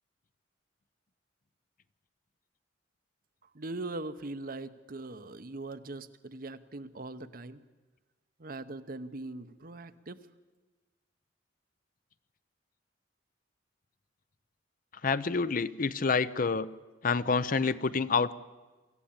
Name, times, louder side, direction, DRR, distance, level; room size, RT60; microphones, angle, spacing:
voice 1, 3.5-7.6 8.4-10.2, right 2 dB, 50° right, 11 dB, 0.9 m, -41 dB
voice 2, 15.0-16.7 17.0-18.3, left 4 dB, 45° left, 14 dB, 0.6 m, -28 dB
25.0 x 14.5 x 8.7 m, 1.2 s
head